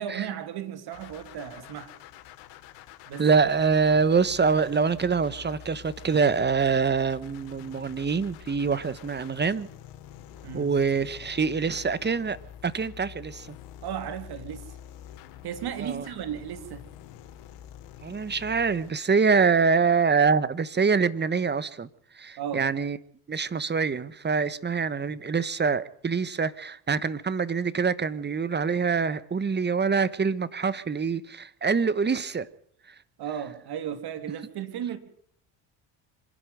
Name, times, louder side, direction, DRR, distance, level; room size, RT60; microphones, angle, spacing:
voice 1, 0.0-2.0 3.1-3.2 10.4-10.7 13.8-14.7 15.4-16.9 22.4-22.7 33.2-35.0, right 9 dB, 60° right, 3.1 m, -35 dB
sound 1, 0.9-18.9, left 10 dB, 75° left, 3.1 m, -47 dB
voice 2, 3.2-9.7 10.5-13.6 15.8-16.1 18.0-21.9 22.1-23.0 23.3-32.5 32.9-33.0, right 5 dB, 25° right, 1.2 m, -25 dB
25.5 x 11.5 x 9.3 m
supercardioid pair, 85°, 43 cm